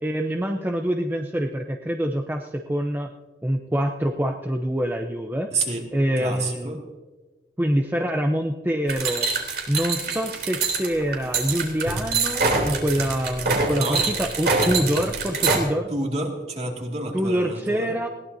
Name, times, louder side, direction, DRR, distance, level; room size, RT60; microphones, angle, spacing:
voice 1, 0.0-3.1 3.4-5.5 5.9-6.8 7.6-9.3 9.7-15.9 17.1-18.1, equal, 10° right, 3 dB, 0.7 m, -25 dB
voice 2, 5.5-5.8 6.2-6.8 13.8-14.0 15.9-18.0, right 2 dB, 40° right, 1 dB, 2.3 m, -29 dB
sound 1, 8.9-15.6, right 4 dB, 65° right, 3.1 m, -24 dB
20.5 x 17.5 x 2.7 m, 1.2 s
head